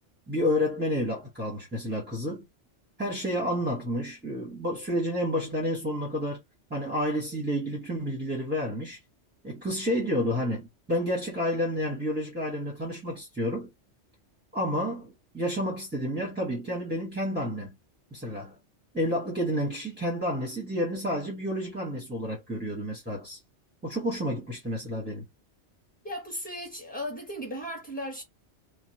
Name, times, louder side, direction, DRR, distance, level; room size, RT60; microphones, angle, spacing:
voice 1, 0.3-2.4 3.0-6.4 6.7-9.0 9.4-13.7 14.5-17.8 18.1-18.6 18.9-23.4 23.8-25.2, equal, 10° right, 0.8 m, -30 dB
voice 2, 26.0-28.2, equal, 5° left, 1.2 m, -36 dB
3.0 x 2.2 x 2.5 m
omnidirectional pair, 1.2 m